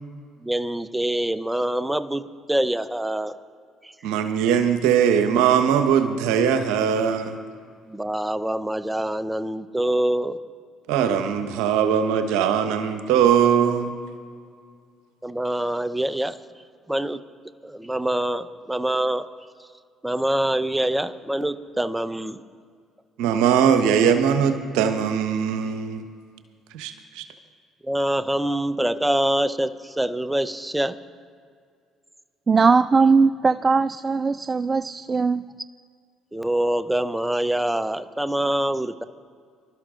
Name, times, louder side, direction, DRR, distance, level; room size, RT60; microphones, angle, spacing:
voice 1, 0.4-3.4 3.8-3.9 7.9-10.4 15.2-16.4 16.9-17.2 17.6-19.3 20.0-22.4 27.8-31.0 36.3-39.0, right 1 dB, 10° right, 12 dB, 0.9 m, -25 dB
voice 2, 4.0-7.4 10.9-13.9 23.2-26.0 26.7-27.2, right 8 dB, 70° right, 9 dB, 1.1 m, -20 dB
voice 3, 32.5-35.4, right 4 dB, 30° right, 14 dB, 0.4 m, -19 dB
25.0 x 12.5 x 3.8 m, 2.1 s
hypercardioid pair, 55°, 0 cm